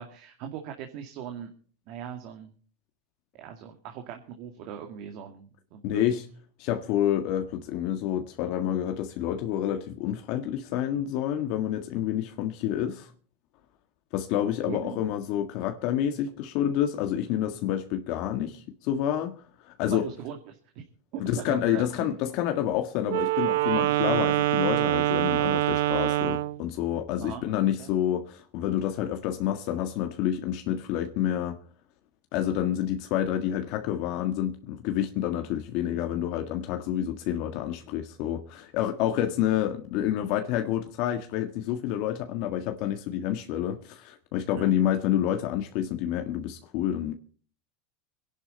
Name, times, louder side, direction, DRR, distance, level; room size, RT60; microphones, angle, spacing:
voice 1, 0.0-1.5 1.9-2.5 3.3-6.1 14.7-15.0 19.9-20.8 21.1-22.1 27.2-27.9 44.5-44.7, right 9 dB, 60° right, 2.2 m, -40 dB
voice 2, 5.8-6.2 6.6-13.1 14.1-20.1 21.2-31.6 32.3-47.1, left 11 dB, 60° left, 1.6 m, -28 dB
Wind instrument woodwind instrument, 23.0-26.6, right 15 dB, 75° right, 0.7 m, -25 dB
23.5 x 11.0 x 4.2 m
supercardioid pair, 115°, 0 cm